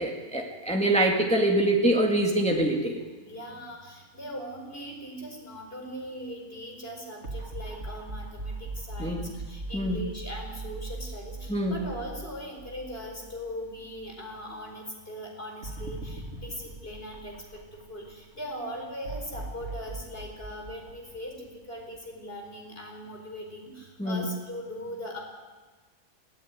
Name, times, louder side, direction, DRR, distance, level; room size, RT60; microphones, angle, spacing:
voice 1, 0.0-3.0 9.0-9.2 9.7-10.0 11.5-11.8 24.0-24.3, right 1 dB, 5° left, 0 dB, 2.1 m, -24 dB
voice 2, 3.2-25.2, equal, 40° left, 1 dB, 5.0 m, -40 dB
sound 1, 7.2-13.6 14.0-14.1 15.6-18.1 19.0-21.8, right 2 dB, 50° right, 2.6 m, -39 dB
20.0 x 16.5 x 9.5 m, 1.4 s
omnidirectional pair, 1.5 m